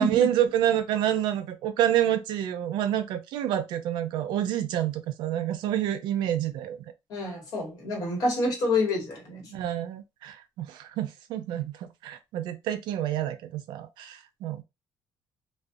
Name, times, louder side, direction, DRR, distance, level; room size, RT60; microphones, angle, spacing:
voice 1, 0.0-6.9 9.5-14.6, right 11 dB, 85° right, 0.5 m, -28 dB
voice 2, 7.1-9.6, left 2 dB, 55° left, 1.1 m, -28 dB
2.6 x 2.2 x 2.4 m
cardioid pair, 170°, 8 cm